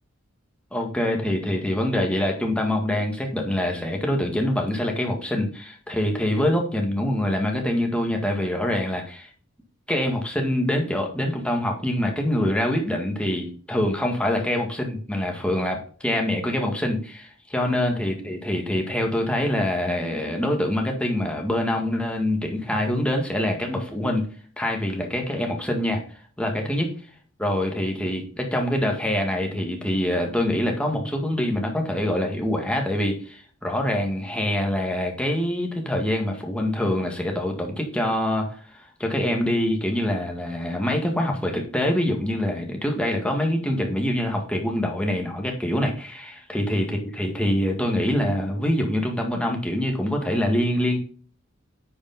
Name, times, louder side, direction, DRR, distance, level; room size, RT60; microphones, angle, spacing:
voice 1, 0.7-9.3 9.9-24.3 24.6-26.0 26.4-26.9 27.4-38.5 38.7-51.0, left 1 dB, 5° left, 1 dB, 1.9 m, -25 dB
9.9 x 5.1 x 3.9 m, 0.42 s
head